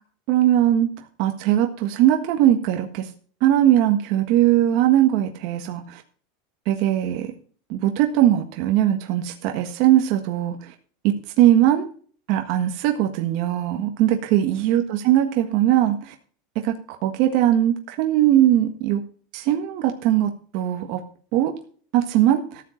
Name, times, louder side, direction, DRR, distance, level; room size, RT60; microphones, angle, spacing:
voice 1, 0.3-0.9 1.2-3.1 3.4-6.0 6.6-7.3 7.7-10.7 11.0-11.9 12.3-16.1 16.6-16.7 17.0-19.0 19.3-21.0 21.3-21.5 21.9-22.6, right 12 dB, 55° right, 4 dB, 1.5 m, -20 dB
14.0 x 7.5 x 4.5 m, 0.44 s
supercardioid pair, 145°, 0 cm